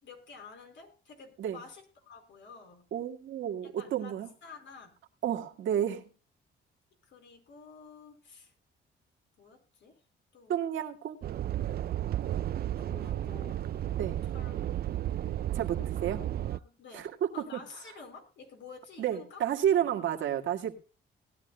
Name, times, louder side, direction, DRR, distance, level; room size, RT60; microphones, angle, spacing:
voice 1, 0.0-2.9 3.8-5.0 7.0-8.5 9.4-10.0 10.3-10.7 12.8-14.5 15.5-16.1 16.4-19.9, left 5 dB, 65° left, 4.6 m, -51 dB
voice 2, 2.9-4.3 5.2-6.1 10.5-11.2 14.0-14.2 15.5-16.2 16.9-17.6 19.0-20.7, right 10 dB, 75° right, 2.0 m, -31 dB
sound 1, 11.2-16.6, right 12 dB, 50° right, 0.4 m, -33 dB
19.5 x 11.5 x 2.2 m
cardioid pair, 90°, 20 cm